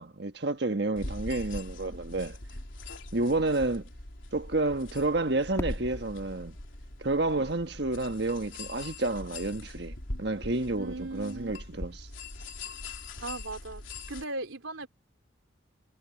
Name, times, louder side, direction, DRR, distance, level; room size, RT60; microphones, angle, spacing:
voice 1, 0.0-2.4 3.1-3.8 4.3-6.6 7.0-12.1, right 2 dB, 55° right, 1.5 m, -30 dB
sound 1, 1.0-14.2, left 2 dB, 75° left, 3.6 m, -42 dB
Fireworks, 5.6-8.4, equal, 15° left, 2.6 m, -43 dB
voice 2, 10.8-11.5 13.2-14.9, right 2 dB, 90° right, 3.6 m, -38 dB
head